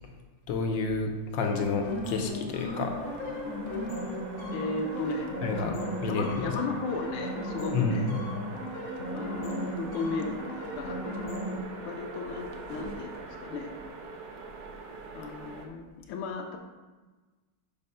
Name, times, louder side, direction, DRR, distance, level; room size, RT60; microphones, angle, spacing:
voice 1, 0.5-2.9 5.4-5.7 6.0-6.3 7.7-8.1, left 4 dB, 65° left, 4 dB, 1.3 m, -29 dB
sound 1, 1.4-11.6, left 1 dB, 45° left, 1.1 m, -36 dB
sound 2, 2.6-15.7, right 4 dB, 60° right, 1.1 m, -42 dB
voice 2, 4.5-5.3 5.5-8.1 9.1-11.0 11.4-11.5 11.8-13.7 15.1-16.6, left 4 dB, 90° left, 2 dB, 1.6 m, -35 dB
5.6 x 5.4 x 5.5 m, 1.3 s
omnidirectional pair, 2.4 m